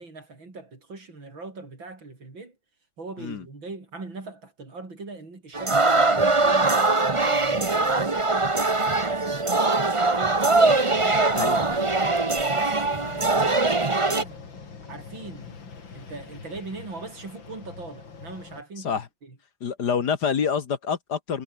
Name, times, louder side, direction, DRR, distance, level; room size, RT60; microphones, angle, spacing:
voice 1, 0.0-2.6 3.0-8.6 8.9-10.6 11.0-14.4 14.9-15.6 15.9-18.9 19.2-19.4, right 3 dB, 75° right, 6.0 m, -40 dB
sound 1, 5.5-14.2, right 3 dB, 20° right, 1.2 m, -22 dB
sound 2, 10.9-18.6, left 5 dB, 70° left, 3.7 m, -44 dB
voice 2, 19.6-21.4, left 6 dB, 55° left, 2.0 m, -27 dB
omnidirectional pair, 2.2 m